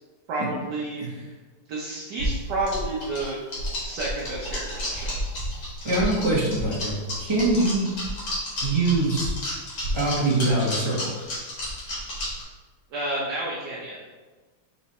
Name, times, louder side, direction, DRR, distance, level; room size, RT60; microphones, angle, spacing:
voice 1, 0.3-1.3 1.7-3.4 3.8-5.2 12.9-14.0, right 2 dB, 60° right, -4 dB, 1.4 m, -30 dB
sound 1, 2.2-12.4, equal, 70° left, 3.0 m, -31 dB
voice 2, 5.8-7.9 8.6-9.3 9.9-11.1, right 2 dB, 15° right, -5 dB, 1.0 m, -23 dB
6.0 x 4.0 x 4.3 m, 1.3 s
omnidirectional pair, 2.4 m